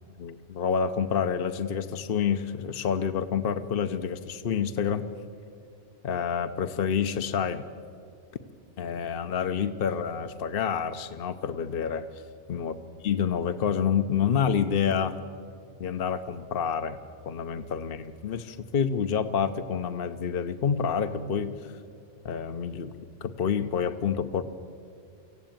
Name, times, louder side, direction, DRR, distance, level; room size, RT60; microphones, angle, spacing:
voice 1, 0.2-5.0 6.0-7.6 8.8-12.1 12.5-12.7 13.0-15.2 15.8-17.0 17.3-21.5 22.2-22.9 23.2-24.4, left 7 dB, 55° left, 8 dB, 1.0 m, -28 dB
24.0 x 15.5 x 9.0 m, 2.4 s
omnidirectional pair, 1.2 m